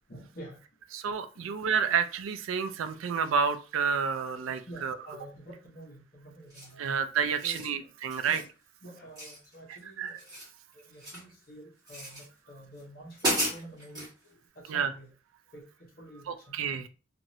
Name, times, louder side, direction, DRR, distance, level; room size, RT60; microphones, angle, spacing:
voice 1, 0.1-0.6 1.3-1.5 4.7-6.8 7.4-7.9 8.3-8.4 8.8-10.3 10.7-15.1 15.5-16.6, right 1 dB, 45° left, -1 dB, 0.9 m, -48 dB
voice 2, 0.9-5.0 6.8-8.4 9.7-10.2 14.7-14.9 16.3-16.9, right 6 dB, 85° right, 10 dB, 0.4 m, -30 dB
sound 1, 6.5-6.9 7.3-7.7 8.1-8.5 9.1-9.8 10.1-11.3 11.9-12.3 12.8-12.9 13.2-14.1, right 1 dB, 20° right, 1.5 m, -34 dB
3.0 x 2.5 x 2.7 m, 0.35 s
head